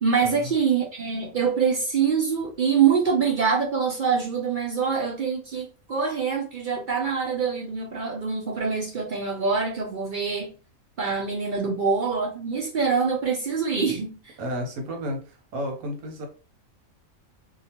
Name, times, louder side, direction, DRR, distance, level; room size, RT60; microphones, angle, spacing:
voice 1, 0.0-10.5 11.0-14.4, right 6 dB, 60° right, 0 dB, 0.5 m, -25 dB
voice 2, 14.4-16.3, equal, 75° right, 2 dB, 1.2 m, -32 dB
2.8 x 2.3 x 2.8 m, 0.34 s
omnidirectional pair, 1.5 m